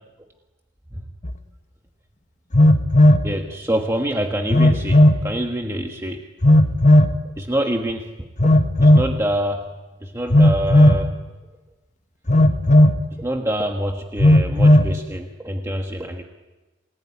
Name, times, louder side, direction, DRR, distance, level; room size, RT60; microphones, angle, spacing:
Telephone, 1.2-1.3 2.5-3.3 4.5-5.2 6.4-7.1 8.4-9.1 10.3-11.0 12.3-13.0 14.2-14.9, left 1 dB, 40° left, 1.4 m, -13 dB
voice 1, 3.2-6.3 7.4-8.3 8.8-9.7 10.0-11.3 13.2-16.2, right 1 dB, 15° right, 2 dB, 1.4 m, -26 dB
28.0 x 19.5 x 9.8 m, 1.2 s
head